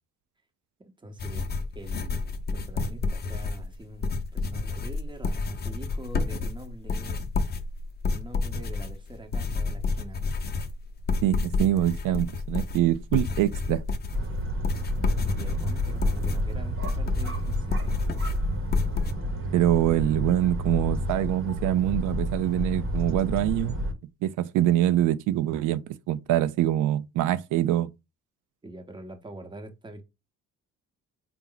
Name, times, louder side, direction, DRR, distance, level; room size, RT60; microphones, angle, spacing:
voice 1, 0.8-1.5 1.7-7.3 8.1-10.4 15.0-18.0 28.6-30.0, right 1 dB, 15° right, 0.8 m, -44 dB
sound 1, 1.2-19.1, left 4 dB, 35° left, 0.6 m, -29 dB
voice 2, 11.2-13.8 19.5-23.8 24.2-27.9, right 13 dB, 85° right, 0.5 m, -24 dB
sound 2, 14.1-23.9, equal, 45° right, 0.9 m, -30 dB
4.4 x 2.0 x 3.8 m
cardioid pair, 90°, 30 cm